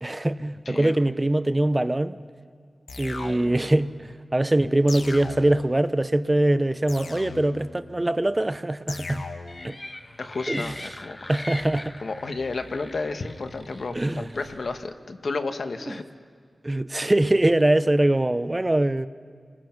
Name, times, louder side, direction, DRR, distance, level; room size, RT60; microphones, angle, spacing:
voice 1, 0.0-2.2 3.0-9.2 9.6-9.8 10.5-10.9 11.3-11.9 13.9-14.3 15.9-16.0 16.6-19.1, right 1 dB, 20° right, 0.5 m, -23 dB
voice 2, 0.6-1.0 10.2-11.5 12.0-16.0, left 3 dB, 65° left, 1.2 m, -32 dB
sound 1, 2.9-3.8 4.9-5.8 6.9-7.8 8.9-9.8, left 3 dB, 80° left, 1.4 m, -38 dB
sound 2, 9.5-14.9, left 2 dB, 30° left, 0.9 m, -41 dB
30.0 x 20.5 x 5.9 m
wide cardioid pair, 90°, 0 cm